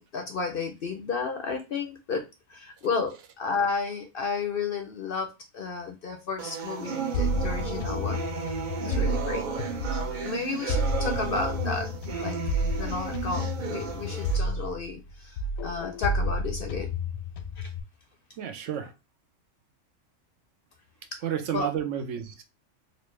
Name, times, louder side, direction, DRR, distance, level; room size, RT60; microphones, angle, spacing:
voice 1, 0.0-2.2 2.5-8.2 8.9-9.4 10.2-11.9 12.2-12.4 12.7-16.9 17.6-17.7 21.5-21.7, left 5 dB, 60° left, 0.6 m, -32 dB
voice 2, 2.8-3.3 18.4-18.9 21.2-22.4, right 9 dB, 75° right, 0.9 m, -32 dB
sound 1, 6.4-14.4, right 6 dB, 50° right, 0.7 m, -33 dB
sound 2, 7.1-10.2 10.7-15.1 15.4-17.8, left 1 dB, 90° left, 1.0 m, -30 dB
4.1 x 2.0 x 3.1 m
omnidirectional pair, 1.3 m